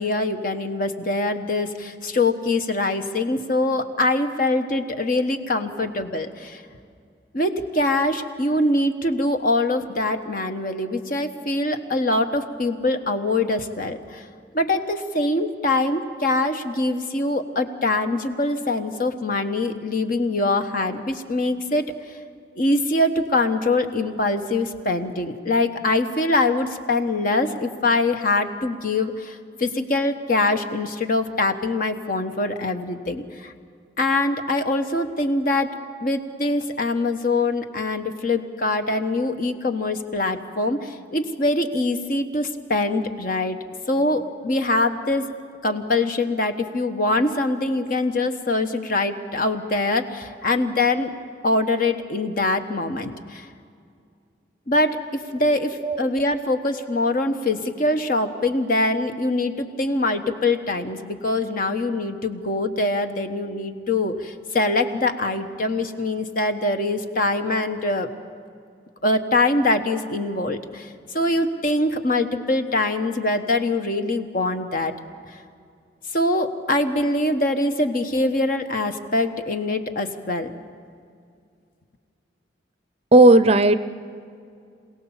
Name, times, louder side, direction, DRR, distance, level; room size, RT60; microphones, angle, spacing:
voice 1, 0.0-6.6 7.3-14.2 14.5-21.9 22.6-33.5 34.0-35.7 36.0-43.6 43.9-45.3 45.6-51.1 51.4-53.5 54.7-55.0 55.3-68.1 69.0-74.9 76.1-80.5, left 2 dB, 50° left, 7 dB, 1.2 m, -23 dB
voice 2, 83.1-83.7, right 2 dB, 35° right, 12 dB, 0.6 m, -13 dB
26.5 x 17.5 x 7.3 m, 2.3 s
head